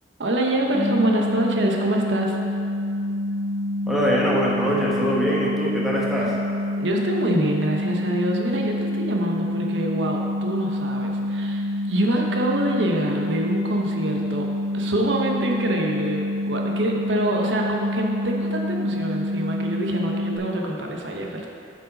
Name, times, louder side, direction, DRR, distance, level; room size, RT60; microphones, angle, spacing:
voice 1, 0.2-2.4 6.2-6.3 6.8-14.5 14.7-21.5, right 1 dB, 85° right, 0 dB, 0.9 m, -25 dB
sound 1, 0.7-20.4, left 1 dB, 85° left, 1.9 m, -27 dB
voice 2, 3.9-6.3, equal, ahead, -5 dB, 1.3 m, -23 dB
7.8 x 5.3 x 5.3 m, 2.6 s
head